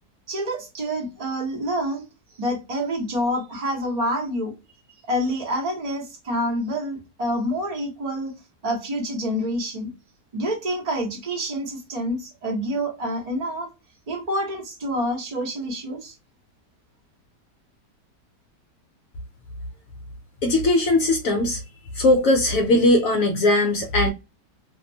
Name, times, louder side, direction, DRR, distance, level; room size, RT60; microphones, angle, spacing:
voice 1, 0.3-2.0 2.4-4.5 5.1-8.3 8.6-9.9 10.3-13.7 14.1-16.1, equal, 35° right, 0.7 m, -27 dB
voice 2, 20.4-21.6 22.0-24.1, left 1 dB, 70° left, 0.8 m, -19 dB
2.8 x 2.0 x 2.6 m
omnidirectional pair, 1.8 m